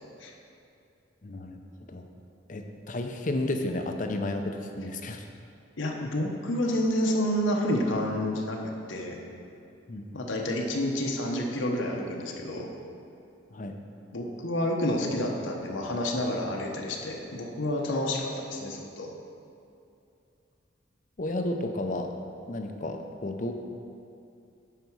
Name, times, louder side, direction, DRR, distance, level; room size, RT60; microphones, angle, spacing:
voice 1, 1.2-1.6 1.9-2.1 2.5-5.3 9.9-10.1 13.5-13.8 21.2-22.1 22.5-23.5, left 1 dB, 40° left, 5 dB, 0.6 m, -32 dB
voice 2, 5.8-9.2 10.1-12.7 14.1-19.1, left 1 dB, 80° left, 0 dB, 0.9 m, -29 dB
9.2 x 5.9 x 4.7 m, 2.6 s
head